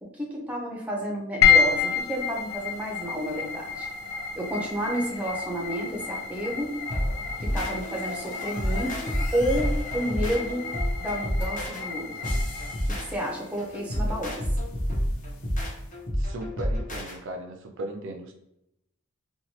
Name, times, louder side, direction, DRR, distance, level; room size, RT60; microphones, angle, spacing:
voice 1, 0.0-3.9 4.3-6.7 7.4-10.7 11.0-12.2 12.9-14.4, equal, 5° right, -1 dB, 0.5 m, -31 dB
sound 1, 1.4-15.9, left 6 dB, 75° left, 0.5 m, -30 dB
sound 2, 6.9-17.2, equal, 40° left, 0.8 m, -29 dB
voice 2, 16.2-18.3, right 1 dB, 65° right, 4 dB, 0.4 m, -37 dB
3.0 x 2.2 x 2.8 m, 0.83 s
head